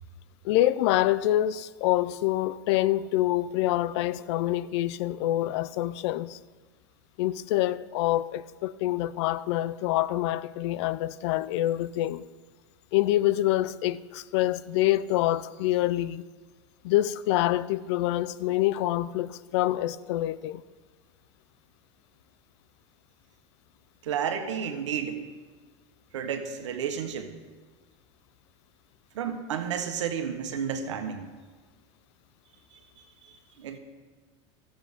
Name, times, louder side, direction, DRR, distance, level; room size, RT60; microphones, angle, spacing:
voice 1, 0.4-6.4 7.2-12.2 12.9-16.3 16.8-20.6, left 15 dB, 70° left, 0.5 m, -26 dB
voice 2, 24.0-25.2 26.1-27.3 29.1-31.3 32.7-32.8 33.3-33.8, right 7 dB, 85° right, 1.3 m, -32 dB
13.0 x 7.9 x 5.2 m
hypercardioid pair, 105°, 15 cm